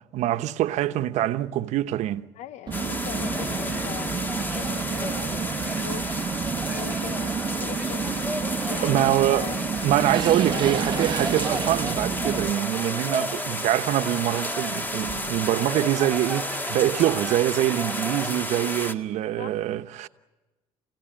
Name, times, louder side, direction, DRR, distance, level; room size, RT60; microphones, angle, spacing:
voice 1, 0.0-2.3 8.8-9.5 9.8-20.1, right 13 dB, 70° right, 1.1 m, -24 dB
voice 2, 2.3-6.3 6.7-7.3 7.6-8.2 8.7-9.7 10.5-11.2 19.4-19.6, left 12 dB, 70° left, 0.8 m, -40 dB
sound 1, 2.7-18.9, left 1 dB, 15° left, 1.8 m, -32 dB
sound 2, 2.7-12.5, right 7 dB, 35° right, 1.0 m, -30 dB
sound 3, 3.1-18.3, equal, ahead, 3.9 m, -37 dB
29.0 x 16.5 x 9.0 m
cardioid pair, 115°, 12 cm